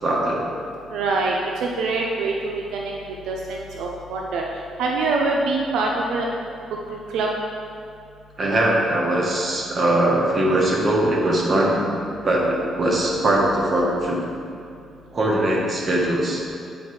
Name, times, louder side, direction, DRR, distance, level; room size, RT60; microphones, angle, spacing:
voice 1, 0.0-0.4 8.4-11.9 12.2-14.2 15.1-16.4, right 1 dB, 40° right, -2 dB, 1.5 m, -21 dB
voice 2, 0.9-1.3 1.6-2.9 3.3-4.4 4.8-6.3 7.1-7.3, right 3 dB, 85° right, -1 dB, 0.6 m, -24 dB
8.4 x 4.6 x 4.3 m, 2.5 s
cardioid pair, 90°, 0 cm